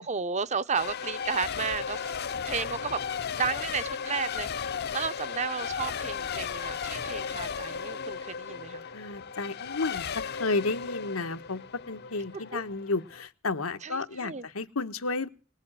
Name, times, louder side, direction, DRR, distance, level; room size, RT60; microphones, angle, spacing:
voice 1, 0.0-2.1 2.5-3.0 3.3-4.7 4.9-8.8 12.3-12.6 13.8-14.5, right 5 dB, 35° right, 0.7 m, -33 dB
Race car auto racing / Accelerating revving vroom / Mechanisms, 0.7-13.3, left 6 dB, 50° left, 0.7 m, -35 dB
voice 2, 8.9-15.3, left 3 dB, 90° left, 1.4 m, -32 dB
20.5 x 7.3 x 9.0 m
head